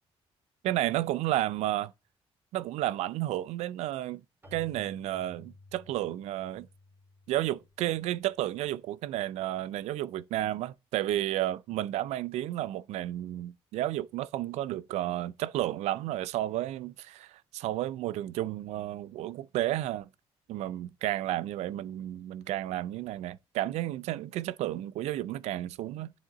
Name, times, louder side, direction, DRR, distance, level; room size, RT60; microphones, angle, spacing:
voice 1, 0.6-1.9 2.5-4.2 4.5-6.7 7.3-20.1 20.5-26.1, right 14 dB, 85° right, 0.4 m, -32 dB
Keyboard (musical), 4.4-8.9, left 3 dB, 20° right, 1.8 m, -55 dB
9.8 x 3.6 x 4.0 m
cardioid pair, 110°, 11 cm